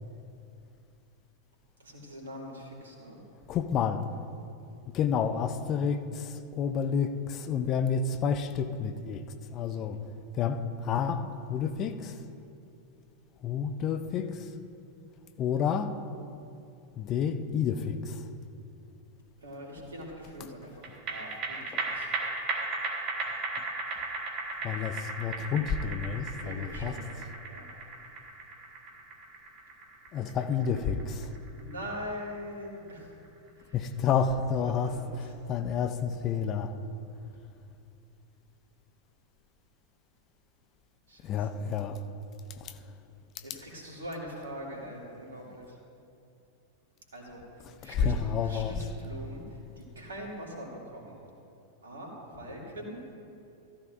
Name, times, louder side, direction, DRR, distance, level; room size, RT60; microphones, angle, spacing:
voice 1, 1.8-3.2 19.4-22.1 26.4-27.1 27.5-27.7 31.6-33.2 33.6-33.9 34.8-35.4 41.1-41.6 43.4-45.8 47.1-51.2 51.8-53.0, equal, 70° right, -2 dB, 2.5 m, -43 dB
voice 2, 3.5-4.0 4.9-9.2 9.5-10.0 10.4-11.2 11.5-12.1 13.4-14.3 15.4-15.9 17.0-18.2 24.6-26.9 30.1-31.3 33.7-34.9 35.5-36.7 41.2-42.0 47.8-48.7, left 7 dB, 35° left, 9 dB, 0.5 m, -29 dB
sound 1, 20.8-33.5 33.8-33.9, right 3 dB, 35° right, 1.5 m, -37 dB
14.0 x 14.0 x 2.6 m, 2.6 s
figure-of-eight pair, 90°, 0 cm